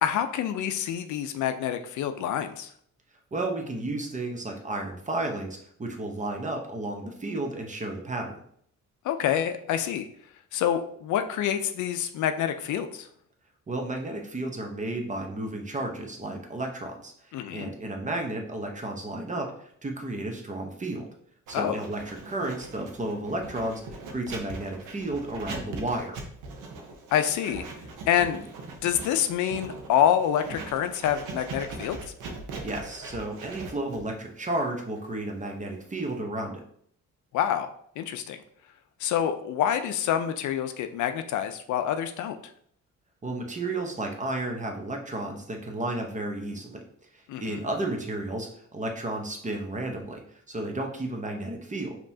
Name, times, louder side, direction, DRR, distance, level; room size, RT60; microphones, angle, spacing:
voice 1, 0.0-2.7 9.0-10.1 10.5-13.1 17.3-17.7 21.5-21.8 27.1-27.6 28.1-28.4 28.8-32.0 37.3-37.7 38.0-38.4 39.0-42.4 47.3-47.6, left 10 dB, 75° left, 8 dB, 0.5 m, -27 dB
voice 2, 3.3-8.4 13.7-17.1 17.5-21.1 21.5-26.2 32.6-36.6 43.2-46.8 47.4-50.2 50.5-52.0, right 2 dB, 25° right, 2 dB, 0.9 m, -32 dB
Writing, 21.5-36.2, right 3 dB, 90° right, 0.8 m, -41 dB
5.2 x 2.9 x 2.7 m, 0.65 s
cardioid pair, 90°, 30 cm